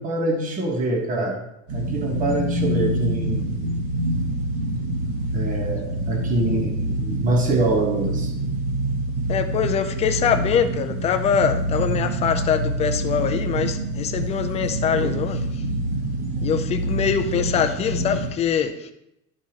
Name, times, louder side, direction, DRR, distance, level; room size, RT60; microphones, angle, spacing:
voice 1, 0.0-1.5 1.7-3.6 5.3-8.3, right 2 dB, 20° right, 2 dB, 1.1 m, -25 dB
sound 1, 1.7-18.3, right 1 dB, 55° right, 2.1 m, -26 dB
voice 2, 9.3-15.4 16.4-18.7, left 8 dB, 20° left, 7 dB, 0.3 m, -23 dB
12.0 x 4.7 x 2.8 m, 0.83 s
cardioid pair, 170°, 36 cm